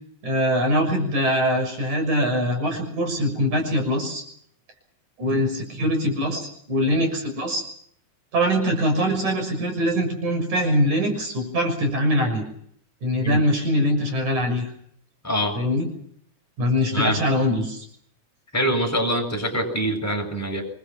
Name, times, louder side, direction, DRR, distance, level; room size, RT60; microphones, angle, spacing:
voice 1, 0.2-4.2 5.2-7.6 8.3-12.4 13.0-14.7 15.6-15.9 16.6-17.8, equal, 80° right, 6 dB, 8.0 m, -23 dB
voice 2, 15.2-15.6 16.9-17.2 18.5-20.6, right 1 dB, 5° left, 0 dB, 7.5 m, -24 dB
28.0 x 24.0 x 6.2 m, 0.64 s
omnidirectional pair, 3.3 m